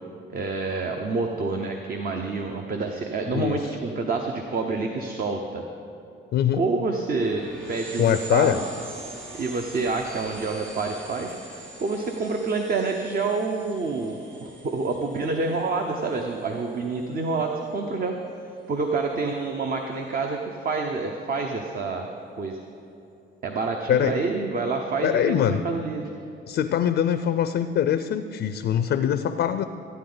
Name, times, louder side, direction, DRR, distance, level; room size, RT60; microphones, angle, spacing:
voice 1, 0.3-5.6 6.5-8.6 9.4-18.1 18.4-22.1 22.4-22.6 23.4-26.1, right 3 dB, 45° right, 3 dB, 0.8 m, -28 dB
voice 2, 6.3-6.6 8.0-8.6 23.9-24.2 25.0-25.6 26.5-29.6, left 9 dB, 65° left, 10 dB, 0.5 m, -23 dB
sound 1, 7.2-17.3, right 2 dB, 75° right, 2.7 m, -44 dB
14.0 x 9.4 x 3.9 m, 2.7 s
cardioid pair, 90°, 20 cm